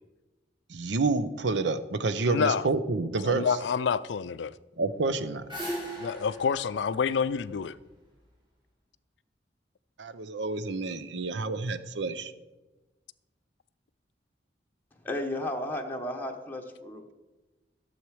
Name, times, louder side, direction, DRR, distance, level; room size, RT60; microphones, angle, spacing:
voice 1, 0.7-3.5 4.8-5.4 10.0-12.3, right 3 dB, 75° right, 0.6 m, -29 dB
voice 2, 2.3-2.7 3.2-4.5 6.0-7.8, left 6 dB, 70° left, 0.4 m, -28 dB
sound 1, 5.0-8.2, right 1 dB, 25° right, 3.6 m, -39 dB
voice 3, 15.0-17.0, left 1 dB, 10° left, 0.9 m, -33 dB
12.5 x 7.2 x 4.8 m
head